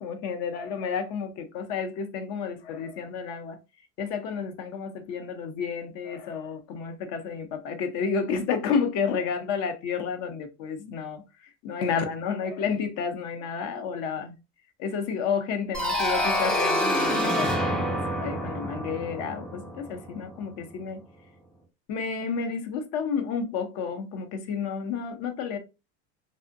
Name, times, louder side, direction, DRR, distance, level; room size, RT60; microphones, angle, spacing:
voice 1, 0.0-3.6 4.0-14.4 14.8-21.0 21.9-25.6, left 6 dB, 55° left, 0.6 m, -31 dB
sound 1, 15.7-20.4, equal, 5° left, 0.3 m, -27 dB
2.5 x 2.0 x 2.4 m
supercardioid pair, 115°, 34 cm